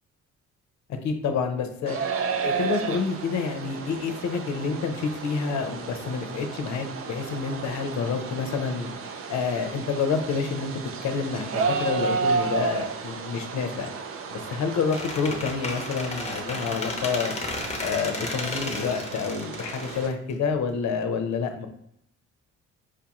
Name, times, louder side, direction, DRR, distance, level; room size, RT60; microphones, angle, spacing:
voice 1, 1.0-2.0 2.4-8.9 9.3-10.7 11.0-13.9 14.3-17.3 17.8-21.7, left 5 dB, 65° left, 6 dB, 0.6 m, -28 dB
sound 1, 1.9-20.1, right 5 dB, 50° right, 0.4 m, -33 dB
Squeak, 14.9-20.7, left 2 dB, 20° left, 0.7 m, -34 dB
4.7 x 2.4 x 2.9 m, 0.73 s
cardioid pair, 90°, 30 cm